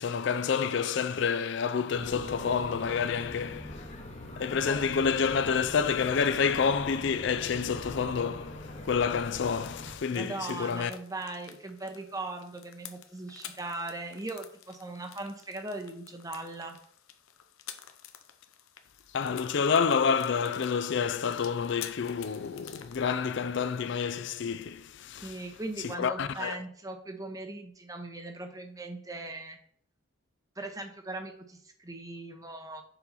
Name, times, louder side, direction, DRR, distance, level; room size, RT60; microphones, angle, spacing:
voice 1, 0.0-3.9 4.4-10.9 19.1-25.4 25.8-26.6, left 6 dB, 60° left, 0.4 m, -28 dB
sound 1, 1.9-10.0, left 1 dB, 35° left, 1.0 m, -42 dB
sound 2, 9.5-23.0, left 10 dB, 90° left, 0.7 m, -50 dB
voice 2, 10.1-16.8 25.2-29.6 30.6-32.8, right 2 dB, 15° right, 0.8 m, -39 dB
7.0 x 5.5 x 4.1 m
head